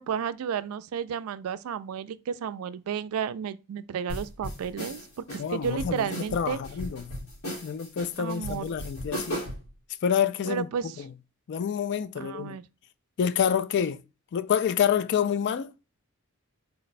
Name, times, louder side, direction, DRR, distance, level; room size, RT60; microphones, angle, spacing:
voice 1, 0.0-6.6 8.2-8.7 10.5-11.0 12.2-12.6, right 7 dB, 75° right, 0.3 m, -32 dB
sound 1, 4.1-9.7, equal, 70° left, 2.0 m, -37 dB
voice 2, 5.4-7.3 7.6-9.4 10.0-10.7 11.0-11.1 11.5-12.6 13.2-14.0 14.3-15.7, left 8 dB, 50° left, 0.3 m, -27 dB
3.9 x 2.2 x 4.0 m
head